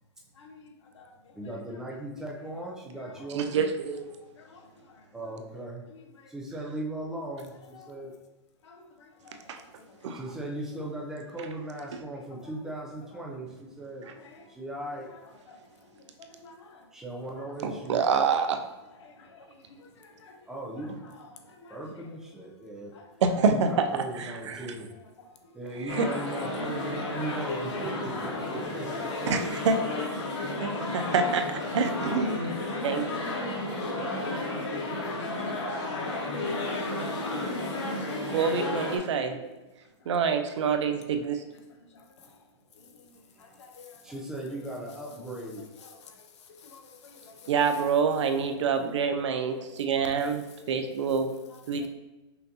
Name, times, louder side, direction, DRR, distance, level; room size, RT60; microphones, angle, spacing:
voice 1, 1.3-3.7 5.1-5.8 6.3-8.1 10.1-14.1 14.5-15.1 16.9-18.0 20.5-21.0 21.7-22.9 23.5-24.9 25.5-29.3 44.0-45.6, right 1 dB, 5° right, -2 dB, 0.5 m, -38 dB
voice 2, 3.3-4.1 9.5-9.6 10.0-10.2 11.9-12.0 17.6-18.6 23.2-24.7 25.9-26.1 29.3-29.8 30.6-32.5 32.8-33.1 38.3-39.4 40.1-41.4 47.5-51.3 51.7-51.9, right 5 dB, 75° right, 6 dB, 0.6 m, -27 dB
voice 3, 12.1-12.5 13.1-13.2 14.2-14.4 15.1-15.2 16.4-16.5 17.4-17.5 18.0-18.4 19.0-19.1 20.2-20.3 20.7-20.9 21.2-21.3 21.6-21.7 26.0-26.1 26.4-26.5 28.3-28.4 29.5-29.7 30.2-31.0 31.9-32.0 36.4-37.0 39.3-39.4 43.8-43.9 44.5-44.6 45.8-45.9 46.7-47.1 47.8-47.9 50.4-50.5, left 4 dB, 75° left, 5 dB, 0.8 m, -50 dB
sound 1, 25.9-39.0, left 2 dB, 90° left, 1.3 m, -32 dB
5.7 x 2.6 x 2.8 m, 1.0 s
hypercardioid pair, 165°, 15 cm